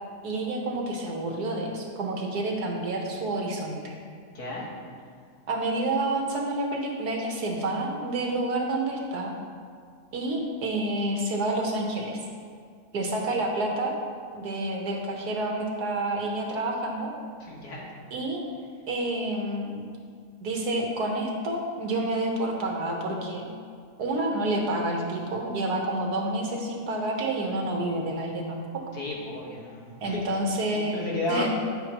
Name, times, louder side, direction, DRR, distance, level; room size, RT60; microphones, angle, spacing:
voice 1, 0.2-3.9 5.5-9.3 10.1-12.2 12.9-13.9 14.3-17.1 18.1-18.4 18.9-19.8 20.4-23.5 24.0-28.6 30.0-31.0 31.3-31.5, right 2 dB, 75° right, 0 dB, 1.7 m, -29 dB
voice 2, 4.3-4.7 17.4-17.9 28.9-30.2 30.7-31.5, left 2 dB, 75° left, -3 dB, 2.0 m, -33 dB
10.0 x 7.7 x 3.0 m, 2.1 s
omnidirectional pair, 1.7 m